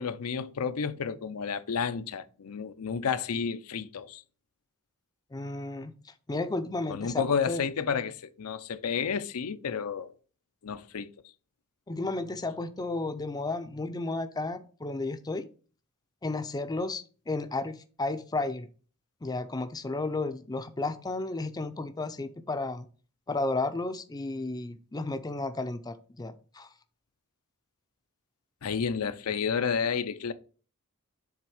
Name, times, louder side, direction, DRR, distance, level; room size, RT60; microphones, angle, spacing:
voice 1, 0.0-4.2 6.9-10.1 10.6-11.1 28.6-30.3, left 6 dB, 80° left, 0.6 m, -31 dB
voice 2, 5.3-5.9 6.3-7.6 11.9-15.5 16.2-18.7 19.2-22.9 23.3-26.7, left 2 dB, 15° left, 0.5 m, -33 dB
7.3 x 3.5 x 4.9 m
head